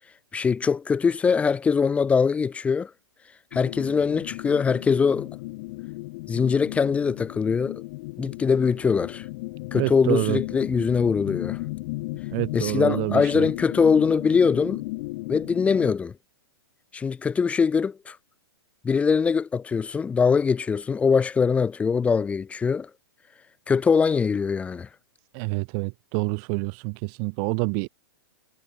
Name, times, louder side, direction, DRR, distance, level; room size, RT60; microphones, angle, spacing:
voice 1, 0.3-2.9 3.5-5.3 6.3-7.8 8.2-9.3 9.7-11.6 12.5-14.8 15.3-16.1 16.9-18.2 18.8-22.9 23.7-24.9, left 5 dB, 10° left, 0.3 m, -22 dB
sound 1, 3.5-15.9, left 22 dB, 45° left, 2.3 m, -35 dB
voice 2, 9.7-10.4 12.3-13.5 25.3-27.9, right 40 dB or more, 40° right, 0.8 m, -27 dB
hypercardioid pair, 130°, 14 cm